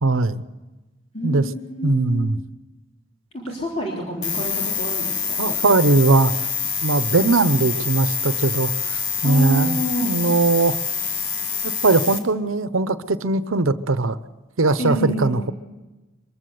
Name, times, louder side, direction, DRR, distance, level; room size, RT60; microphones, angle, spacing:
voice 1, 0.0-0.4 1.2-1.4 1.8-2.4 5.4-6.3 6.8-10.8 11.6-14.2 14.6-15.5, right 3 dB, 90° right, 13 dB, 0.9 m, -20 dB
voice 2, 1.1-2.2 3.3-5.6 9.2-10.1 14.8-15.4, right 1 dB, 30° left, -3 dB, 3.5 m, -27 dB
sound 1, 4.2-12.2, left 6 dB, 75° left, 2.2 m, -26 dB
23.0 x 14.5 x 7.9 m, 1.2 s
head